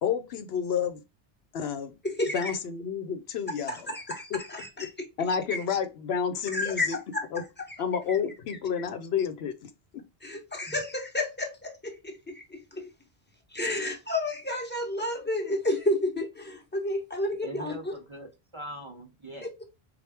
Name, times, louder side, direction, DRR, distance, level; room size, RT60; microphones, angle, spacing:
voice 1, 0.0-1.0 1.5-2.0 2.3-4.4 4.8-4.9 5.2-7.0 7.3-7.4 7.8-10.0, left 7 dB, 85° left, 0.9 m, -30 dB
voice 2, 2.0-2.5 3.7-4.3 4.5-4.7 5.5-5.6 6.5-6.9 7.1-7.2 10.2-12.9 13.5-17.9, left 1 dB, 10° left, 0.8 m, -31 dB
voice 3, 17.4-19.7, right 1 dB, 35° right, 0.5 m, -42 dB
4.3 x 2.3 x 3.3 m
omnidirectional pair, 1.0 m